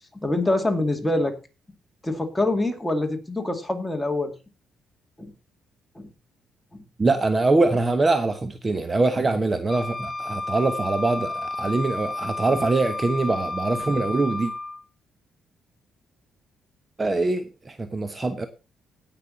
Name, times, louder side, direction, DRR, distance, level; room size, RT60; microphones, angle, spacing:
voice 1, 0.2-1.3 2.0-4.3 5.2-5.3 6.0-6.1 6.7-6.8, left 2 dB, 10° left, 2.4 m, -25 dB
voice 2, 7.0-14.5 17.0-18.5, right 3 dB, 25° right, 1.0 m, -23 dB
Wind instrument woodwind instrument, 9.7-14.8, left 2 dB, 35° left, 1.6 m, -32 dB
17.0 x 6.0 x 4.1 m
cardioid pair, 90°, 0 cm